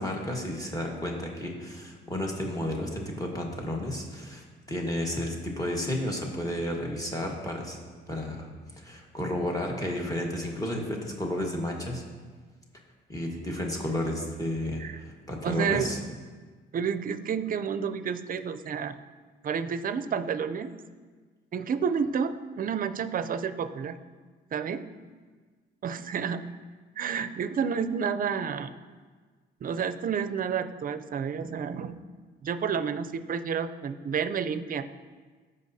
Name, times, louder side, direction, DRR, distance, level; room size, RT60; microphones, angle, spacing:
voice 1, 0.0-7.8 8.1-8.5 8.8-12.0 13.1-16.0, left 1 dB, 15° left, 0 dB, 1.5 m, -32 dB
voice 2, 15.4-15.9 16.7-19.0 19.4-20.7 21.5-24.0 24.5-24.8 25.8-26.4 27.0-28.7 29.6-32.0 32.4-35.0, right 7 dB, 45° right, 11 dB, 0.5 m, -30 dB
14.5 x 5.4 x 2.7 m, 1.4 s
cardioid pair, 90°, 20 cm